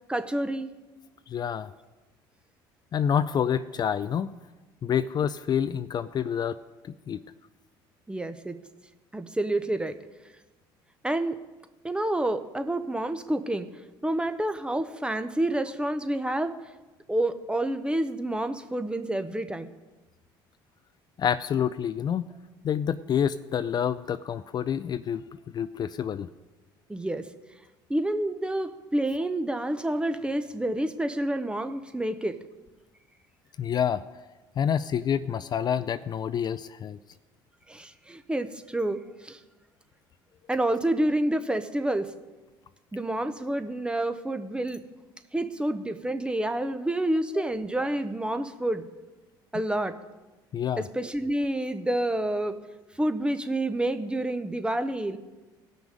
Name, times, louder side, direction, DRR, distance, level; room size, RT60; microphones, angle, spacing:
voice 1, 0.1-0.7 8.1-8.6 9.1-10.0 11.0-11.4 11.8-13.7 14.0-16.6 17.1-19.7 26.9-27.3 27.9-32.4 37.7-39.4 40.5-42.1 42.9-44.8 45.3-48.9 49.5-49.9 50.8-52.6 53.0-55.2, right 1 dB, 10° right, 10 dB, 0.8 m, -28 dB
voice 2, 1.3-1.7 2.9-4.3 4.8-6.6 6.8-7.2 21.2-22.3 22.6-25.2 25.5-26.3 33.6-34.0 34.6-37.0 50.5-50.8, left 8 dB, 40° left, 13 dB, 0.4 m, -27 dB
17.5 x 6.2 x 5.1 m, 1.2 s
supercardioid pair, 75°, 11 cm